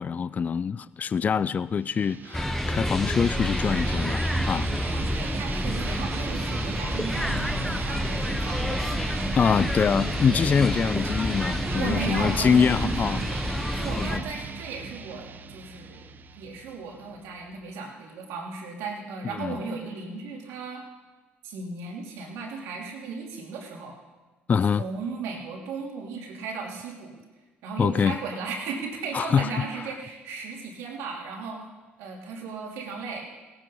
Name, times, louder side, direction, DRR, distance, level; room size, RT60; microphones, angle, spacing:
voice 1, 0.0-5.0 9.3-13.2 14.0-14.2 19.4-19.6 24.5-24.8 27.8-28.2 29.1-29.5, left 6 dB, 35° left, 0.4 m, -24 dB
sound 1, 1.8-17.2, right 6 dB, 45° right, 0.6 m, -37 dB
sound 2, 2.3-14.2, left 1 dB, 5° left, 0.8 m, -29 dB
sound 3, 3.3-17.6, right 1 dB, 60° right, 2.6 m, -44 dB
voice 2, 4.9-9.4 11.7-13.4 13.7-16.1 16.4-20.8 21.4-24.0 24.8-27.1 27.6-31.6 32.0-33.3, right 4 dB, 85° right, 3.0 m, -36 dB
17.5 x 9.8 x 5.5 m
supercardioid pair, 85°, 4 cm